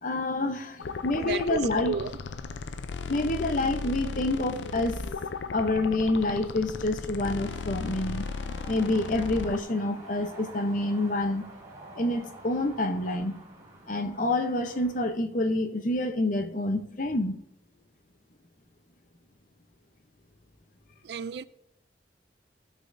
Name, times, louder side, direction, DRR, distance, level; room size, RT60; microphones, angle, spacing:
voice 1, 0.0-1.9 3.1-5.1 5.5-8.3 8.7-11.5 12.0-13.4 13.9-17.4, left 2 dB, 45° left, 0.8 m, -27 dB
sound 1, 0.8-9.6, left 4 dB, 85° left, 0.5 m, -36 dB
voice 2, 1.1-2.2 2.5-2.6 21.0-21.4, right 5 dB, 65° right, 0.4 m, -33 dB
sound 2, 1.8-4.6, left 3 dB, 85° right, 2.7 m, -53 dB
sound 3, 7.4-15.1, right 2 dB, 20° right, 2.1 m, -48 dB
15.0 x 6.3 x 2.6 m
head